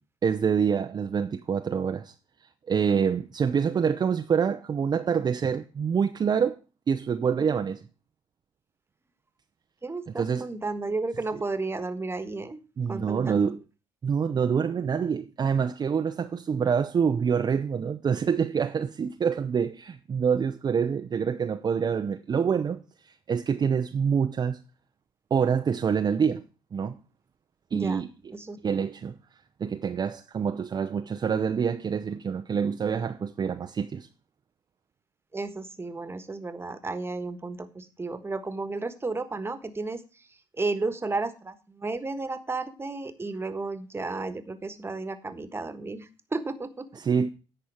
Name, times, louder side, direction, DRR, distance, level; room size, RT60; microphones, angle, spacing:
voice 1, 0.2-2.1 2.7-6.6 6.9-7.8 10.2-10.5 11.3-11.4 12.8-13.6 14.0-24.6 25.3-26.4 26.7-27.0 27.7-28.1 28.6-29.2 29.6-34.1 47.0-47.3, right 6 dB, 40° right, 0.6 m, -26 dB
voice 2, 9.8-12.6 12.9-13.4 27.7-28.0 28.3-28.6 35.3-40.0 40.6-47.0, right 3 dB, 25° right, 1.4 m, -33 dB
10.5 x 4.4 x 7.3 m
supercardioid pair, 65°, 10 cm